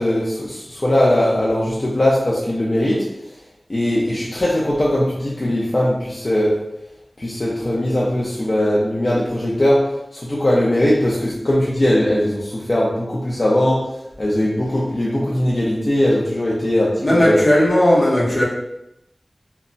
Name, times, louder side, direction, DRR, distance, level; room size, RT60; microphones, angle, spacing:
voice 1, 0.0-3.0 3.7-6.6 7.2-9.8 10.1-13.8 14.2-17.4, left 1 dB, 50° left, -6 dB, 0.5 m, -19 dB
voice 2, 17.0-18.4, left 1 dB, 65° left, -5 dB, 0.8 m, -16 dB
2.2 x 2.0 x 3.8 m, 0.84 s
wide cardioid pair, 60°, 0 cm